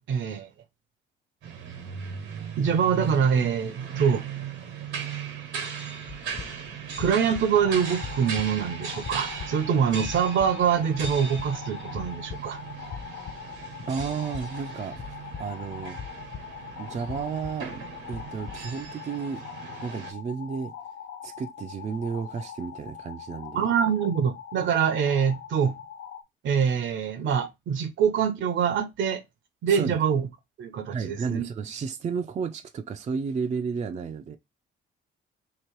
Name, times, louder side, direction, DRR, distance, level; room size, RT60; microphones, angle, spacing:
voice 1, 0.1-0.5 2.6-4.2 7.0-12.6 23.5-25.8 26.4-29.2 29.6-30.3 30.6-31.5, right 7 dB, 70° right, 0.8 m, -24 dB
sound 1, 1.4-20.1, right 6 dB, 90° right, 1.3 m, -38 dB
sound 2, 6.1-18.9, left 6 dB, 40° left, 0.6 m, -43 dB
sound 3, 7.5-26.2, left 8 dB, 75° left, 0.7 m, -42 dB
voice 2, 13.9-16.0 16.8-19.4 19.8-20.7 21.2-23.7 29.7-30.0 30.9-34.4, right 6 dB, 35° right, 0.4 m, -32 dB
3.0 x 2.9 x 4.5 m
cardioid pair, 90°, 20 cm